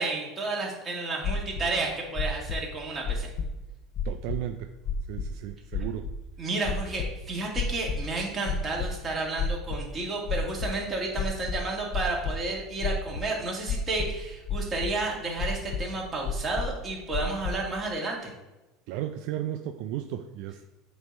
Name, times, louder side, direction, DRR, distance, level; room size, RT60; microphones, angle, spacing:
voice 1, 0.0-3.3 6.4-18.3, right 3 dB, 25° right, -2 dB, 2.1 m, -31 dB
sound 1, 1.2-1.7 2.1-2.6 3.0-3.6 4.0-4.4 4.9-5.3 5.7-6.1 6.6-7.1 7.5-8.1 8.4-8.9 9.4-9.9 10.3-10.7 11.1-12.3 12.8-13.2 13.7-14.2 14.5-14.9 15.4-15.8 16.2-16.8 17.1-17.5, left 5 dB, 45° left, 0.8 m, -30 dB
voice 2, 4.0-4.7 5.1-6.1 18.9-20.6, right 12 dB, 65° right, 7 dB, 0.4 m, -34 dB
8.0 x 3.0 x 5.4 m, 1.0 s
supercardioid pair, 115°, 0 cm